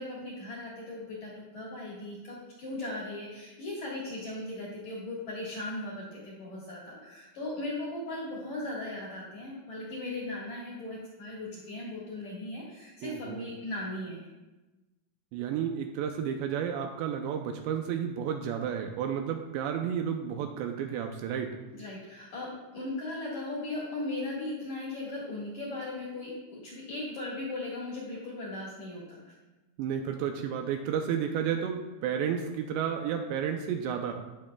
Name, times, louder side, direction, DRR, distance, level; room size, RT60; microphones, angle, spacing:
voice 1, 0.0-14.2 21.7-29.3, left 2 dB, 55° left, -6 dB, 2.1 m, -38 dB
voice 2, 13.0-13.5 15.3-21.6 29.8-34.1, right 8 dB, 80° right, 4 dB, 2.6 m, -32 dB
18.0 x 6.2 x 2.3 m, 1.1 s
omnidirectional pair, 5.3 m